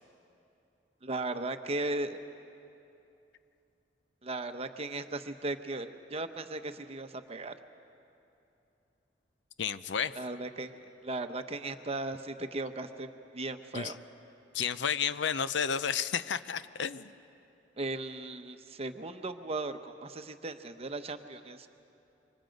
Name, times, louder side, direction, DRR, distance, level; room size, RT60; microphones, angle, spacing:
voice 1, 1.0-2.2 4.2-7.5 10.1-10.7 11.0-14.0 17.8-21.7, right 2 dB, 35° right, 8 dB, 0.9 m, -37 dB
voice 2, 9.6-10.1 13.7-13.9 14.5-17.1, left 7 dB, 70° left, 14 dB, 0.6 m, -31 dB
28.0 x 24.0 x 5.2 m, 2.8 s
head